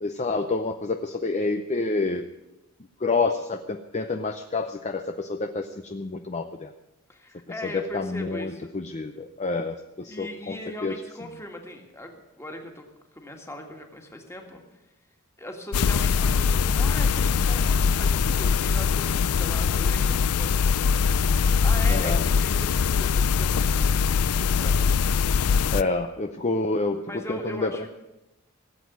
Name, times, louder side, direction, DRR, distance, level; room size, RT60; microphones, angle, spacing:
voice 1, 0.0-2.2 3.0-6.7 7.6-10.6 10.8-10.9 21.9-22.3 25.7-27.7, left 3 dB, 30° left, 6 dB, 0.6 m, -28 dB
voice 2, 7.1-8.7 10.0-12.9 13.1-14.6 15.4-21.0 21.2-24.0 24.3-24.9 27.1-27.9, left 1 dB, 10° left, 3 dB, 1.9 m, -39 dB
sound 1, 15.7-25.8, left 6 dB, 90° left, 0.5 m, -22 dB
17.0 x 8.3 x 9.4 m, 0.97 s
head